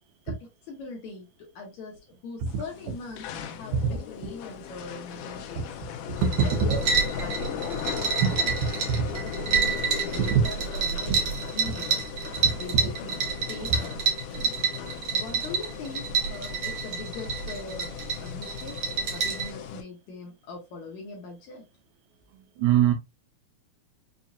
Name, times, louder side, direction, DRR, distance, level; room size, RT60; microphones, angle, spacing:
voice 1, 0.3-5.7 6.4-6.8 7.2-12.0 12.6-14.5 15.1-18.8 19.1-21.6, left 3 dB, 65° left, 1.9 m, -41 dB
sound 1, 2.5-19.8, left 9 dB, 80° left, 1.9 m, -37 dB
sound 2, 6.2-19.5, right 5 dB, 70° right, 1.6 m, -29 dB
voice 2, 22.6-22.9, right 9 dB, 90° right, 2.7 m, -21 dB
6.1 x 2.7 x 2.4 m
omnidirectional pair, 4.2 m